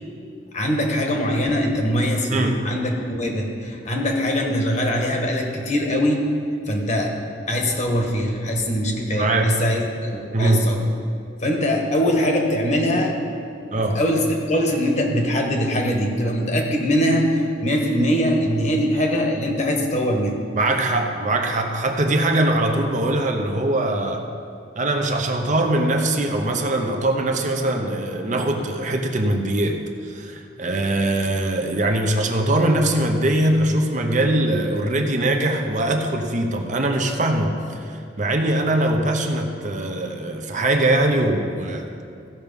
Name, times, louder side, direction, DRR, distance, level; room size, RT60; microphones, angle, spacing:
voice 1, 0.5-6.3 6.7-7.2 7.5-10.9 11.4-13.2 13.9-20.4, equal, 40° left, 2 dB, 1.3 m, -22 dB
voice 2, 2.3-2.7 9.1-9.6 10.3-10.6 13.7-14.0 20.5-24.3 24.8-29.8 30.1-41.9, right 1 dB, 45° right, 4 dB, 0.9 m, -22 dB
15.5 x 5.9 x 5.3 m, 2.5 s
head